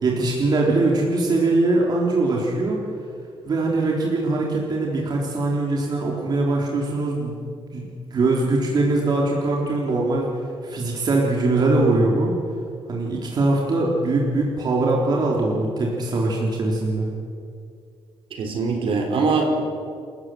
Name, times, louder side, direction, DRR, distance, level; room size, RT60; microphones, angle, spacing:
voice 1, 0.0-2.8 3.4-7.4 7.7-10.3 10.6-12.3 12.9-17.1, right 2 dB, 40° right, -2 dB, 3.6 m, -22 dB
voice 2, 18.4-19.6, right 3 dB, 60° right, 2 dB, 4.3 m, -22 dB
28.0 x 14.5 x 7.8 m, 2.3 s
cardioid pair, 150°, 10 cm